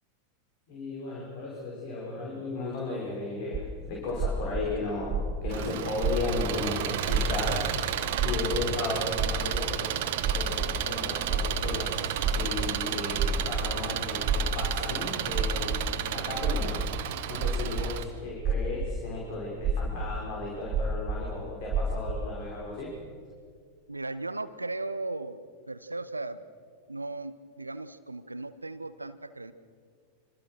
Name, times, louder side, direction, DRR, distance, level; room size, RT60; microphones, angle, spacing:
voice 1, 0.7-7.6 8.2-16.8 17.3-22.9, left 2 dB, 45° left, -2 dB, 5.6 m, -35 dB
sound 1, 3.5-3.7 4.1-5.6 5.9-6.5 7.0-7.7 8.0-8.7 9.1-9.6 10.2-10.9 11.2-11.9 12.2-13.7 14.2-14.8 15.3-15.8 16.3-17.1 17.3-17.9 18.2-19.0 19.6-21.3 21.6-22.3, right 5 dB, 25° right, 3.0 m, -30 dB
Engine, 5.5-18.0, right 10 dB, 50° right, 2.0 m, -32 dB
sound 2, 11.5-17.9 19.1-19.2, left 1 dB, 85° left, 2.4 m, -52 dB
voice 2, 23.9-25.4 25.7-26.4 26.9-29.5, right 2 dB, 80° right, 13 dB, 1.0 m, -36 dB
26.0 x 25.5 x 6.5 m, 2.1 s
figure-of-eight pair, 90°, 0 cm